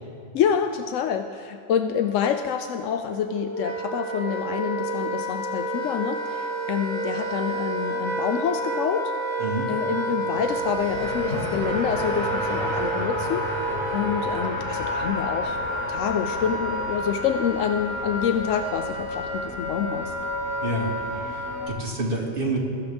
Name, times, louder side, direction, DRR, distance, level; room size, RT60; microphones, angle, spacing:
voice 1, 0.3-9.1 9.7-13.5 13.9-15.6 15.9-20.1, left 8 dB, 85° left, 7 dB, 1.0 m, -27 dB
Wind instrument woodwind instrument, 3.1-21.9, right 1 dB, 65° right, 2.5 m, -30 dB
Race car auto racing, 10.3-21.7, left 1 dB, 60° left, 2.0 m, -34 dB
voice 2, 20.6-20.9 21.3-22.6, right 2 dB, 45° right, -4 dB, 2.4 m, -28 dB
21.5 x 14.0 x 3.5 m, 2.4 s
omnidirectional pair, 1.3 m